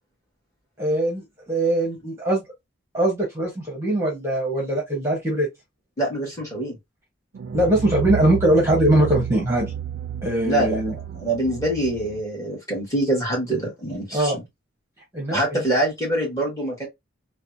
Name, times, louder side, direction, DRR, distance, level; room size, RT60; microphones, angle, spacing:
voice 1, 0.8-2.4 2.9-5.5 7.5-9.7 10.2-11.0 14.1-14.4 15.1-15.6, right 1 dB, 15° right, 1.0 m, -21 dB
voice 2, 6.0-6.8 10.4-14.4 15.3-16.9, right 1 dB, 15° left, 1.6 m, -25 dB
sound 1, 7.3-12.2, right 9 dB, 65° right, 0.3 m, -32 dB
3.3 x 2.2 x 2.6 m
head